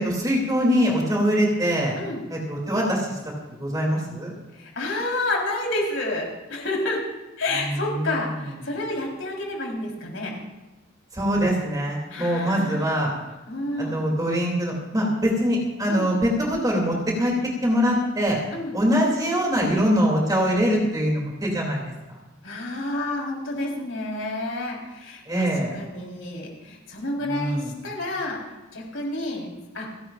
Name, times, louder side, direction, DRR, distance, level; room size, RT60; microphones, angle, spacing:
voice 1, 0.0-1.9 2.3-3.2 3.6-4.3 7.5-8.3 11.1-13.1 13.8-17.3 17.6-18.4 18.7-21.9 25.3-25.7 27.2-27.7, equal, 20° right, -2 dB, 2.8 m, -23 dB
voice 2, 4.5-7.0 7.4-10.3 12.1-12.9 13.5-14.1 15.9-16.1 18.5-18.8 22.4-25.5 25.7-29.9, left 2 dB, 80° left, -1 dB, 4.0 m, -30 dB
29.0 x 11.5 x 2.5 m, 1.1 s
head